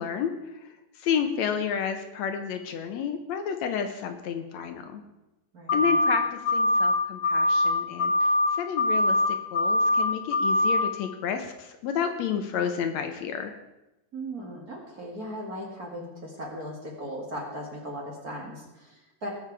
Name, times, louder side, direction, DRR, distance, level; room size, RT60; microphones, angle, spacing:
voice 1, 0.0-5.0 5.7-13.6, left 7 dB, 75° left, 7 dB, 2.0 m, -31 dB
voice 2, 5.5-5.9 14.1-19.3, equal, 35° right, -1 dB, 2.2 m, -38 dB
sound 1, 5.7-6.2 6.4-6.9 7.2-7.7 8.0-8.5 8.8-9.3 9.5-10.0 10.3-10.8, left 1 dB, 45° left, 1.4 m, -22 dB
19.0 x 7.2 x 4.7 m, 0.98 s
omnidirectional pair, 3.4 m